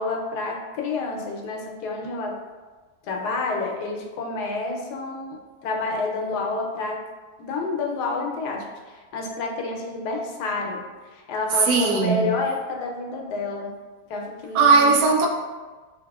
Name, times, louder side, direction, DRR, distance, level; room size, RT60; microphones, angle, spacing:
voice 1, 0.0-2.3 3.0-7.0 7.4-10.8 11.1-13.7 14.1-15.0, left 3 dB, 80° left, 0 dB, 1.1 m, -29 dB
voice 2, 11.7-12.3 14.5-15.3, right 4 dB, 85° right, 1 dB, 1.1 m, -18 dB
4.0 x 2.8 x 2.3 m, 1.3 s
omnidirectional pair, 1.7 m